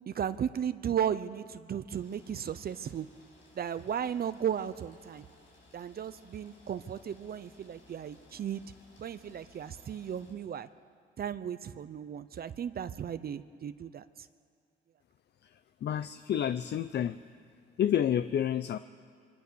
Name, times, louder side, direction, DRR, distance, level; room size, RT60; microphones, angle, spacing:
voice 1, 0.1-3.1 3.6-5.2 5.7-8.6 9.0-10.7 11.2-14.0, right 9 dB, 50° right, 12 dB, 0.8 m, -35 dB
sound 1, 1.9-10.3, left 2 dB, 85° left, 7.5 m, -60 dB
voice 2, 15.8-17.2 17.8-18.8, left 10 dB, 60° left, 13 dB, 0.6 m, -29 dB
26.0 x 23.5 x 7.0 m, 2.2 s
cardioid pair, 90°, 20 cm